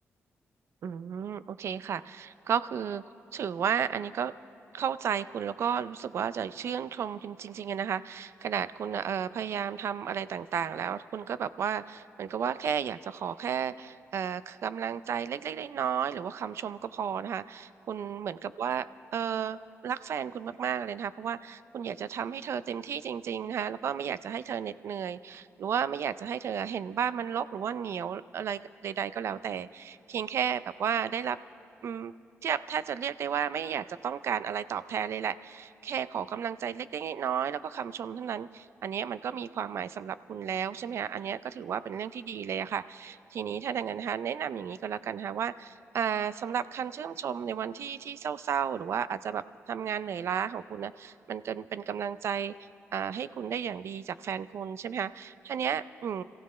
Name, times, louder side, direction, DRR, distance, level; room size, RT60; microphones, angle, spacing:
voice 1, 0.8-3.0 3.3-4.3 4.7-31.4 31.8-32.1 32.4-52.5 52.9-56.2, right 8 dB, 60° right, 15 dB, 0.4 m, -33 dB
26.5 x 15.5 x 3.2 m, 3.0 s
cardioid pair, 120°, 5 cm